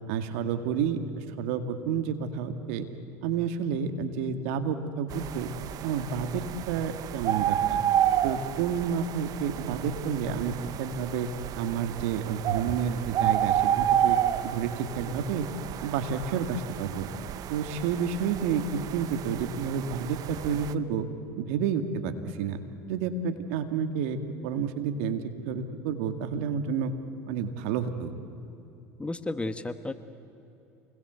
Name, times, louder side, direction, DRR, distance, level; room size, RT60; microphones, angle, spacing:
voice 1, 0.1-2.9 3.2-5.5 5.8-7.8 8.2-11.3 11.6-14.2 14.4-15.5 15.8-17.1 17.5-21.1 21.4-22.6 22.9-24.2 24.4-26.9 27.3-28.2, right 7 dB, 75° right, 8 dB, 2.1 m, -30 dB
sound 1, 5.1-20.7, right 11 dB, 55° right, 1.0 m, -30 dB
voice 2, 29.0-29.9, left 2 dB, 15° left, 11 dB, 1.4 m, -32 dB
28.0 x 21.0 x 8.2 m, 2.9 s
hypercardioid pair, 80°, 8 cm